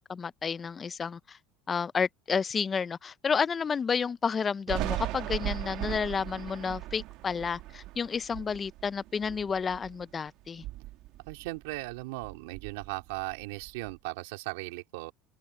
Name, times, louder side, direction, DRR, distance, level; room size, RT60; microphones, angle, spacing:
voice 1, 0.1-1.4 1.7-10.6, left 6 dB, 20° left, 0.4 m, -31 dB
Thunder, 4.7-10.1 10.5-11.9 12.2-13.9, right 16 dB, 55° right, 1.6 m, -38 dB
voice 2, 11.3-15.1, right 22 dB, 85° right, 3.3 m, -37 dB
open air
cardioid pair, 155°, 0 cm